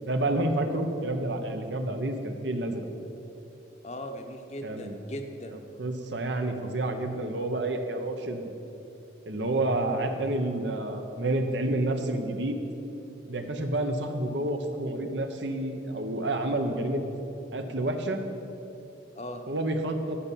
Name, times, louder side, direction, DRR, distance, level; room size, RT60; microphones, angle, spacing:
voice 1, 0.0-2.9 4.6-5.0 5.5-8.5 9.3-12.6 13.3-17.0 17.5-18.2 19.5-20.2, right 1 dB, 70° right, 5 dB, 1.1 m, -29 dB
voice 2, 3.8-5.6 19.1-19.4, equal, 35° left, 5 dB, 0.9 m, -38 dB
13.0 x 5.6 x 9.1 m, 2.9 s
head